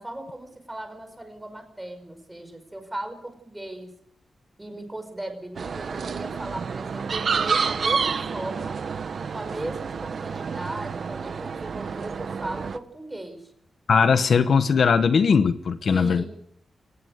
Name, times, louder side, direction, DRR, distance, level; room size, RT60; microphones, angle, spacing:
voice 1, 0.0-3.9 4.6-8.8 9.3-13.5 15.8-16.3, right 1 dB, 10° right, 6 dB, 5.1 m, -37 dB
sound 1, 5.6-12.8, right 5 dB, 55° right, 1.1 m, -29 dB
voice 2, 13.9-16.2, left 6 dB, 55° left, 11 dB, 1.0 m, -19 dB
22.5 x 19.5 x 8.2 m, 0.72 s
wide cardioid pair, 170°, 0 cm